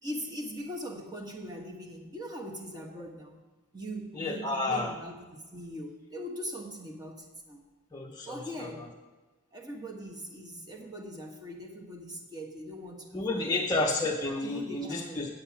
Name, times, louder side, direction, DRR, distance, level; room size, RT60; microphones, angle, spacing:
voice 1, 0.0-3.4 3.7-5.1 5.5-7.6 8.2-8.9 9.5-13.6 14.4-15.3, equal, 20° right, 1 dB, 1.2 m, -41 dB
voice 2, 4.1-5.0 7.9-8.9 13.1-15.3, left 2 dB, 20° left, -2 dB, 0.7 m, -31 dB
8.9 x 8.4 x 5.8 m, 1.3 s
head